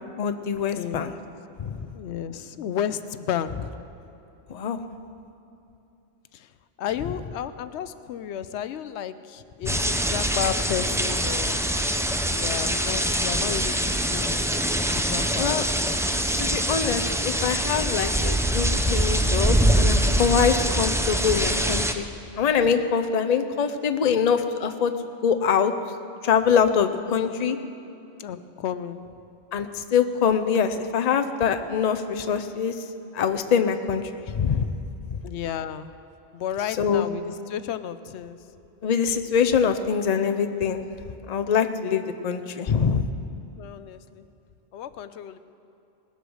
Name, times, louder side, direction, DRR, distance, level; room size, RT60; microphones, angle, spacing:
voice 1, 0.2-1.1 1.6-1.9 4.5-4.8 9.7-9.8 15.4-15.6 16.4-22.0 22.4-24.9 25.2-25.7 26.2-27.6 29.5-32.7 33.1-34.7 35.1-35.2 36.8-37.1 38.8-40.8 41.3-43.1, left 7 dB, 45° left, 7 dB, 0.7 m, -24 dB
voice 2, 0.8-1.2 1.9-3.7 6.3-6.5 6.8-11.6 12.3-14.4 15.1-15.7 16.3-16.7 24.1-24.2 28.2-29.1 35.2-35.9 36.3-38.4 43.6-44.3 44.7-45.4, left 9 dB, 85° left, 13 dB, 0.9 m, -32 dB
sound 1, 9.7-21.9, right 1 dB, 5° right, 0.4 m, -24 dB
19.5 x 8.1 x 6.3 m, 2.8 s
omnidirectional pair, 1.1 m